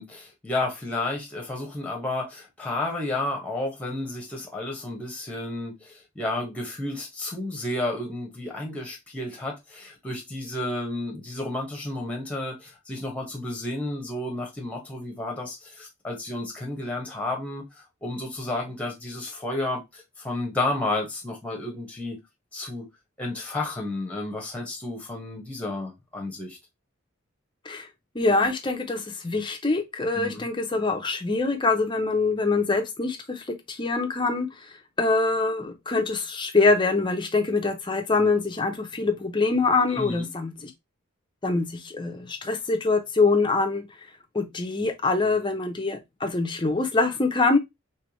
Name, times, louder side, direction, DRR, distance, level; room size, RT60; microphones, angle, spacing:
voice 1, 0.0-22.2 22.5-22.9 23.2-26.6 30.1-30.5 39.9-40.3, left 2 dB, 5° left, 1.1 m, -32 dB
voice 2, 28.1-40.7 41.4-43.9 44.3-47.6, left 3 dB, 20° left, 0.6 m, -24 dB
3.4 x 3.1 x 3.0 m
head